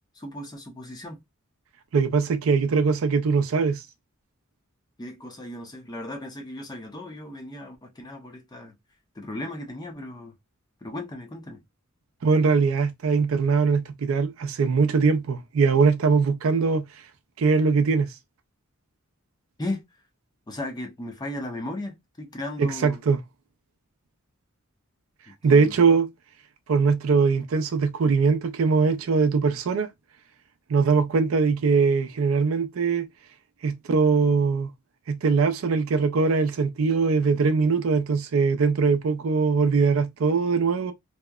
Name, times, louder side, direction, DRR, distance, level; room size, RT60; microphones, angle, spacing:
voice 1, 0.2-1.2 5.0-8.7 9.2-10.3 10.8-11.6 19.6-19.8 20.5-23.0 25.3-25.7, left 1 dB, 20° left, 0.5 m, -36 dB
voice 2, 1.9-3.8 12.2-16.8 17.4-18.1 22.6-23.2 25.4-26.1 26.7-29.9 30.7-33.1 33.6-34.7 35.1-40.9, right 5 dB, 70° right, 0.4 m, -21 dB
2.7 x 2.0 x 2.2 m
head